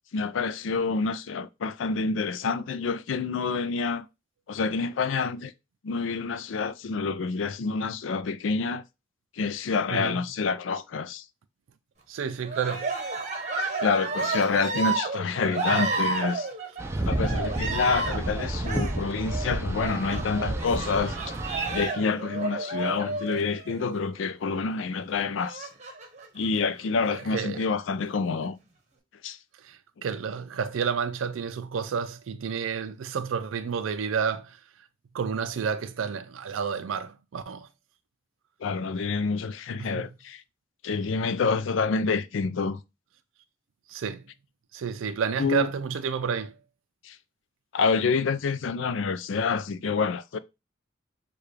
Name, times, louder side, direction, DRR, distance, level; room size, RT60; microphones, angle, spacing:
voice 1, 0.1-4.0 4.5-5.5 5.8-8.8 9.4-11.2 13.8-16.5 17.0-21.1 21.7-25.7 26.3-28.6 29.2-29.4 38.6-40.4 40.8-42.8 45.4-45.7 47.0-47.2 47.7-50.4, left 4 dB, 70° left, 0.4 m, -27 dB
voice 2, 12.1-12.9 15.7-15.9 27.1-27.7 29.6-34.6 35.1-37.7 39.8-40.1 43.9-44.3 44.7-46.6, right 6 dB, 85° right, 0.4 m, -30 dB
Cheering, 12.4-24.1 25.4-26.3 27.0-27.6, right 3 dB, 35° right, 0.9 m, -32 dB
Boat Water vehicle, 16.8-21.9, right 1 dB, 15° right, 0.4 m, -31 dB
6.7 x 2.3 x 3.1 m
head